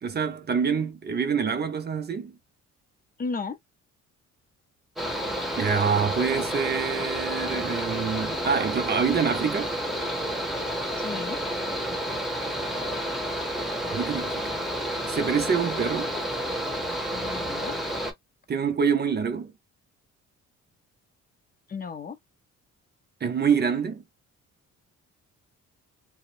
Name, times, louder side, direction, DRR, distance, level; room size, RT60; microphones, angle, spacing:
voice 1, 0.0-2.3 5.6-9.7 13.9-14.6 15.1-16.1 18.5-19.5 23.2-24.0, right 6 dB, 35° right, 0.5 m, -26 dB
voice 2, 3.2-3.6 11.0-11.4 17.1-17.8 21.7-22.2, left 4 dB, 30° left, 0.5 m, -34 dB
Mechanical fan, 5.0-18.1, equal, ahead, 0.9 m, -30 dB
2.8 x 2.0 x 2.4 m
cardioid pair, 90°, 30 cm